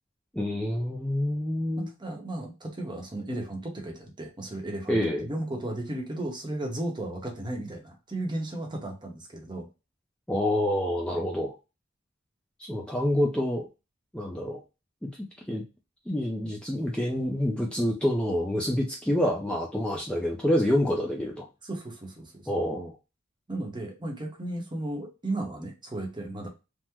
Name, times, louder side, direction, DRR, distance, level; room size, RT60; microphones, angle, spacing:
voice 1, 0.3-1.9 4.9-5.3 10.3-11.5 12.6-13.7 14.1-14.6 15.0-15.1 15.5-15.6 16.1-21.5 22.5-22.9, left 1 dB, 5° left, -1 dB, 0.4 m, -27 dB
voice 2, 1.8-9.7 21.6-22.6 23.5-26.5, right 1 dB, 25° right, 2 dB, 0.8 m, -35 dB
3.4 x 2.0 x 2.9 m, 0.27 s
head